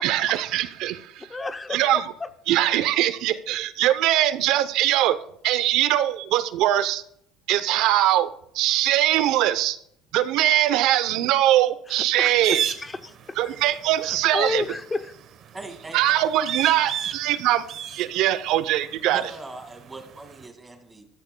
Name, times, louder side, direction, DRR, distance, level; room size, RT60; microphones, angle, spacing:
voice 1, 0.0-1.3 1.7-2.1 2.5-5.2 5.4-7.0 7.5-8.3 8.5-9.8 10.1-12.6 13.4-14.6 15.9-17.6 18.0-19.2, right 13 dB, 70° right, 13 dB, 0.6 m, -22 dB
voice 2, 1.3-2.3 11.9-13.4 14.0-15.1, left 3 dB, 20° left, 11 dB, 0.6 m, -31 dB
sound 1, 12.4-20.5, right 9 dB, 50° right, 1.0 m, -34 dB
voice 3, 15.5-16.2 19.1-21.1, right 2 dB, 15° right, 5 dB, 2.1 m, -40 dB
13.5 x 13.0 x 2.2 m, 0.71 s
supercardioid pair, 100°, 0 cm